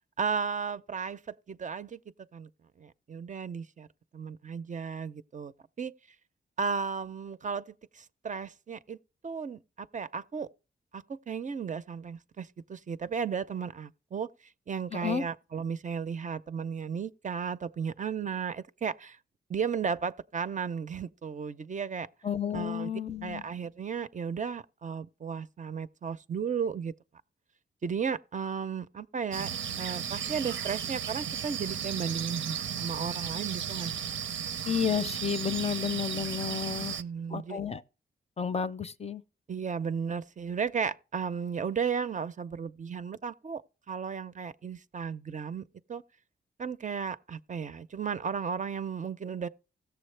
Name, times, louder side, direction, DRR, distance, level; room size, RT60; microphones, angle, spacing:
voice 1, 0.2-2.0 2.3-2.5 2.8-3.9 4.1-5.5 5.8-5.9 6.6-9.0 9.2-10.5 10.9-14.3 14.7-19.2 19.5-22.1 22.5-22.9 23.2-26.9 27.8-29.5 29.8-33.9 36.7-37.6 39.5-43.6 43.9-45.6 45.9-46.0 46.6-49.5, right 6 dB, 40° right, 0.5 m, -34 dB
voice 2, 14.9-15.3 22.2-23.4 34.7-37.0 37.3-37.8 38.4-39.2, left 7 dB, 35° left, 0.5 m, -31 dB
sound 1, 29.3-37.0, right 8 dB, 85° right, 0.6 m, -35 dB
16.5 x 7.0 x 3.3 m
cardioid pair, 80°, 19 cm